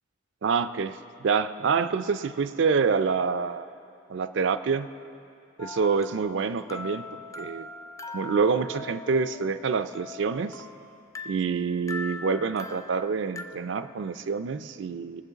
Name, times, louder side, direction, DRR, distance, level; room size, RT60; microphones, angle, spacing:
voice 1, 0.4-3.7 4.1-4.9 5.6-7.0 7.4-7.7 8.1-10.6 11.3-15.2, right 5 dB, 60° right, 12 dB, 0.4 m, -27 dB
sound 1, 5.6-13.5, left 3 dB, 15° left, 0.3 m, -41 dB
20.0 x 7.5 x 3.9 m, 2.5 s
head